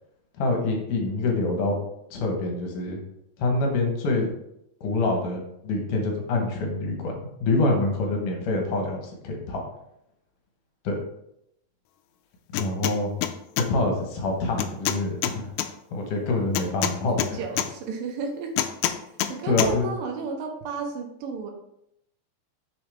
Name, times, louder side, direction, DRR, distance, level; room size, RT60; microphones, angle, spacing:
voice 1, 0.4-1.8 2.1-3.0 3.4-4.3 4.8-7.1 7.4-9.6 10.8-10.9 12.6-13.1 13.6-15.5 15.9-17.4 19.5-19.9, left 2 dB, 70° left, 2 dB, 2.6 m, -26 dB
sound 1, 12.5-13.0 13.2-13.7 14.6-15.7 16.6-17.7 18.6-19.3 19.6-19.7, left 12 dB, 85° left, 2.3 m, -26 dB
voice 2, 17.1-18.5 19.3-21.5, right 5 dB, 85° right, 3 dB, 2.7 m, -32 dB
6.5 x 6.2 x 3.4 m, 0.79 s
omnidirectional pair, 4.0 m